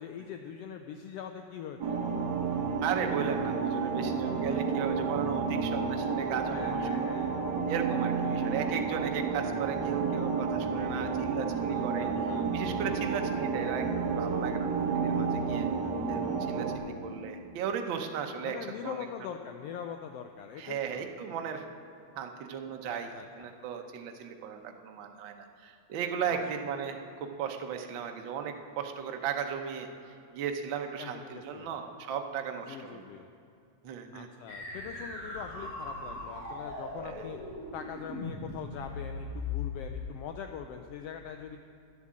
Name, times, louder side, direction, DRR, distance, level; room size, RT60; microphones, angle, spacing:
voice 1, 0.0-2.1 6.5-7.3 8.2-8.5 11.7-12.5 18.4-21.1 22.9-23.3 26.3-26.4 31.0-31.7 32.7-33.3 34.1-37.4 37.7-41.6, left 8 dB, 90° left, 5 dB, 1.3 m, -42 dB
sound 1, 1.8-16.8, right 5 dB, 55° right, 1.2 m, -31 dB
voice 2, 2.8-6.8 7.7-12.1 12.5-14.7 14.9-15.7 16.1-18.6 18.8-19.1 20.6-21.7 22.2-23.1 23.4-29.9 30.3-33.0 33.8-34.3 37.0-37.3, right 7 dB, 90° right, 4 dB, 1.0 m, -36 dB
sound 2, 34.5-40.2, left 3 dB, 55° left, 4.3 m, -39 dB
11.0 x 9.7 x 7.4 m, 2.4 s
omnidirectional pair, 3.3 m